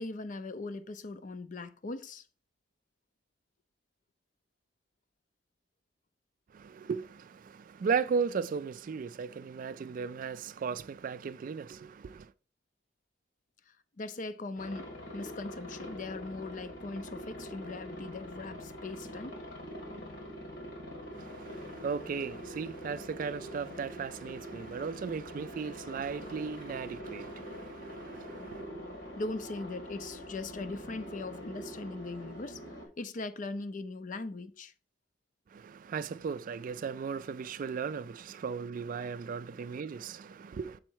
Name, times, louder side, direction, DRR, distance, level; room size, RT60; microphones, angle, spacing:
voice 1, 0.0-2.2 14.0-19.3 29.2-32.6 33.0-34.7, left 3 dB, 45° left, 0.5 m, -40 dB
voice 2, 6.5-12.3 21.1-28.7 35.5-40.8, right 6 dB, 50° right, 0.3 m, -36 dB
Aircraft, 14.6-32.8, equal, 75° left, 2.0 m, -44 dB
6.2 x 4.4 x 4.6 m
head